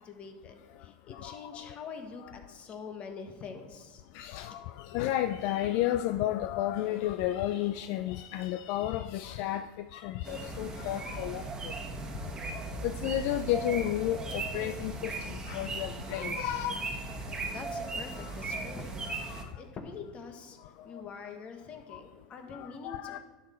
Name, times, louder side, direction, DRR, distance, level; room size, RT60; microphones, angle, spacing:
voice 1, 0.0-4.0 17.2-20.6 20.8-23.2, left 5 dB, 35° left, 5 dB, 1.4 m, -45 dB
voice 2, 4.1-9.7 9.9-11.4 12.8-16.8 18.2-18.3 19.1-19.2 22.6-23.2, left 13 dB, 55° left, 11 dB, 0.3 m, -32 dB
sound 1, 10.2-19.4, right 3 dB, 20° right, 1.5 m, -37 dB
11.0 x 6.3 x 4.4 m, 1.3 s
supercardioid pair, 120°, 4 cm